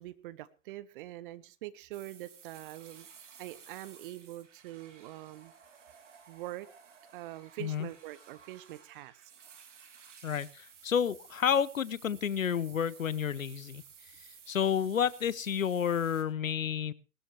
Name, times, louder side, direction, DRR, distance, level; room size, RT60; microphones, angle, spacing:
voice 1, 0.0-3.1 3.4-5.5 6.3-6.7 7.1-9.3, right 16 dB, 40° right, 1.0 m, -44 dB
sound 1, 1.9-16.2, right 7 dB, 60° right, 3.1 m, -55 dB
voice 2, 10.2-13.8 14.5-16.9, left 8 dB, 75° left, 0.8 m, -30 dB
19.5 x 13.0 x 3.1 m
figure-of-eight pair, 105°, 41 cm